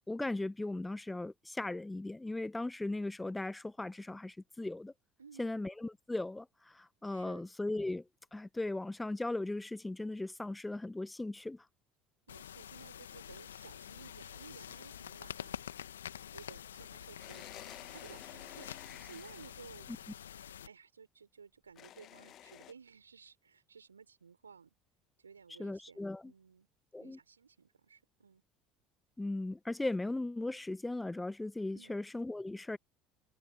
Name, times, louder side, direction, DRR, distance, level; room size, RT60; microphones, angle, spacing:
voice 1, 0.1-4.9 5.4-8.0 8.3-11.6 25.6-26.3 26.9-27.2 29.2-32.8, left 2 dB, 10° left, 1.2 m, -38 dB
voice 2, 5.2-5.5 7.1-7.5 12.3-15.6 16.3-19.9 20.6-24.7 25.2-26.7 27.0-28.4 31.7-32.0, right 6 dB, 80° right, 6.3 m, -56 dB
sound 1, 12.3-20.7, left 10 dB, 75° left, 1.9 m, -47 dB
sound 2, 17.2-19.6 21.8-22.7, left 12 dB, 45° left, 1.2 m, -52 dB
figure-of-eight pair, 60°, 0 cm